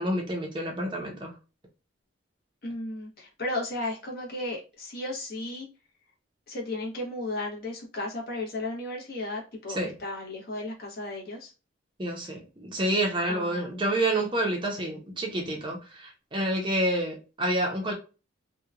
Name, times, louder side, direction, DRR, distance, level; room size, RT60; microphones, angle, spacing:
voice 1, 0.0-1.3 9.8-9.9 12.0-17.9, right 1 dB, 25° right, 0.6 m, -28 dB
voice 2, 2.6-5.7 6.5-11.5 13.3-13.8, left 2 dB, 50° left, 0.9 m, -34 dB
2.9 x 2.2 x 2.3 m
head